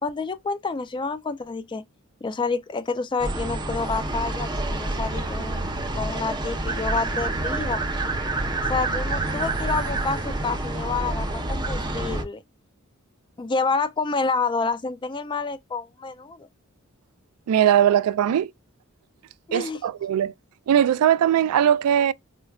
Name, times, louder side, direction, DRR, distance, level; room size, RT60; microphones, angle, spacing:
voice 1, 0.0-1.8 2.2-5.7 5.9-7.8 8.7-12.4 13.4-16.5 19.5-19.8, left 4 dB, 20° left, 0.3 m, -28 dB
sound 1, 3.2-12.2, right 2 dB, 20° right, 0.6 m, -28 dB
voice 2, 17.5-18.5 19.5-20.3 20.7-22.1, right 10 dB, 85° right, 0.3 m, -20 dB
4.4 x 2.2 x 2.2 m
head